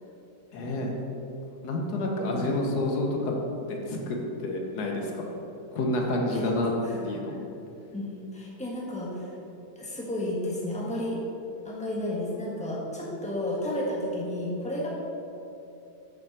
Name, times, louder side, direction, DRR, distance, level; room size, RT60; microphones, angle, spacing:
voice 1, 0.5-0.9 1.6-3.3 3.7-5.3 5.7-6.7 7.0-7.4, left 1 dB, 80° left, 0 dB, 1.6 m, -29 dB
voice 2, 7.9-9.3 9.7-11.2 11.6-14.9, left 1 dB, 5° left, -4 dB, 1.3 m, -32 dB
6.7 x 5.9 x 6.0 m, 2.8 s
omnidirectional pair, 1.7 m